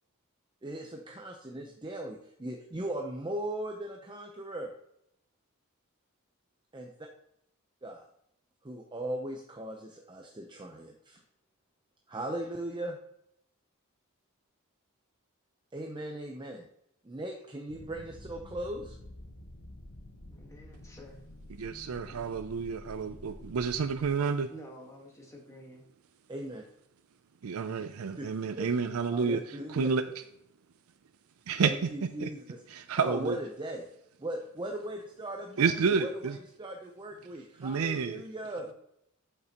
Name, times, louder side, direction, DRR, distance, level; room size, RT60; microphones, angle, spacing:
voice 1, 0.6-4.7 6.7-6.9 7.8-8.1 8.6-11.2 12.1-13.0 15.7-16.7 17.0-19.0 26.3-26.6 28.2-28.3 28.6-28.7 29.1-29.9 31.6-32.6 33.0-33.8 34.2-38.7, right 1 dB, 20° right, 1 dB, 0.7 m, -38 dB
sound 1, 17.7-24.1, left 1 dB, 70° left, 1.1 m, -49 dB
voice 2, 20.3-21.2 21.7-22.3 24.5-25.8 37.1-37.2 38.6-38.7, equal, 15° left, 0 dB, 1.5 m, -51 dB
voice 3, 21.6-24.5 27.4-30.0 31.5-31.9 32.2-32.3 32.7-33.4 35.6-36.4 37.6-38.2, right 5 dB, 80° right, 9 dB, 0.4 m, -30 dB
8.5 x 6.6 x 2.9 m, 0.75 s
head